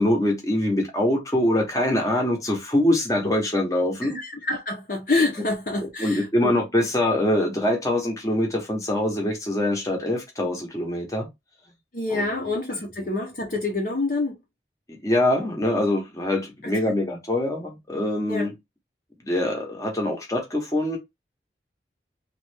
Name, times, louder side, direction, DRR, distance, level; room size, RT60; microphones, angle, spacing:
voice 1, 0.0-4.2 5.8-11.3 12.1-12.5 14.9-18.5 19.2-21.0, left 1 dB, 20° left, 0.9 m, -24 dB
voice 2, 4.0-6.5 6.8-6.9 11.9-14.4 16.6-16.9 18.3-18.5, left 2 dB, 50° left, 0.7 m, -27 dB
3.2 x 2.4 x 3.3 m
head